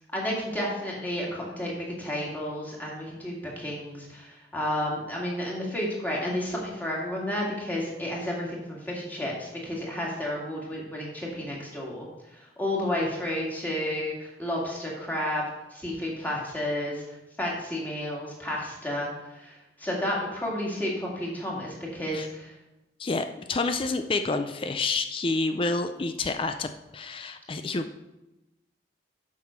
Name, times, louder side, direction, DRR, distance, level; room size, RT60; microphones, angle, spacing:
voice 1, 0.1-1.7 2.0-12.1 12.3-15.4 15.7-17.0 17.4-22.5, left 1 dB, 10° left, -4 dB, 2.1 m, -31 dB
voice 2, 23.0-27.9, left 3 dB, 30° left, 8 dB, 0.4 m, -29 dB
7.5 x 6.0 x 5.7 m, 0.98 s
head